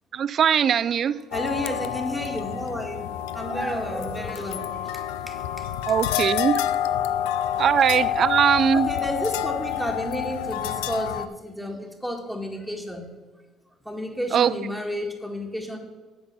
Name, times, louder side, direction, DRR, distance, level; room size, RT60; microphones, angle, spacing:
voice 1, 0.1-1.1 5.9-6.6 7.6-8.9 14.3-14.5, right 8 dB, 50° right, 16 dB, 0.4 m, -20 dB
sound 1, 1.3-11.3, left 11 dB, 80° left, 0.3 m, -28 dB
voice 2, 1.3-4.7 5.3-5.4 8.7-13.1 13.9-15.8, equal, ahead, 2 dB, 1.8 m, -31 dB
7.9 x 5.3 x 6.8 m, 1.3 s
hypercardioid pair, 65°, 0 cm